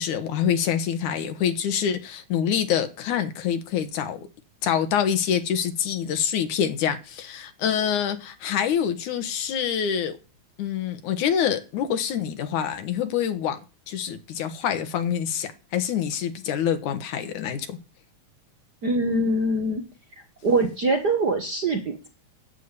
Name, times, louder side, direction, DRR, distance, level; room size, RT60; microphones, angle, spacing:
voice 1, 0.0-4.2 4.6-10.2 10.6-13.6 13.9-17.8, left 8 dB, 80° left, 2.7 m, -26 dB
voice 2, 18.8-19.8 20.4-22.1, right 2 dB, 50° right, 1.3 m, -23 dB
9.3 x 8.5 x 8.2 m
omnidirectional pair, 3.5 m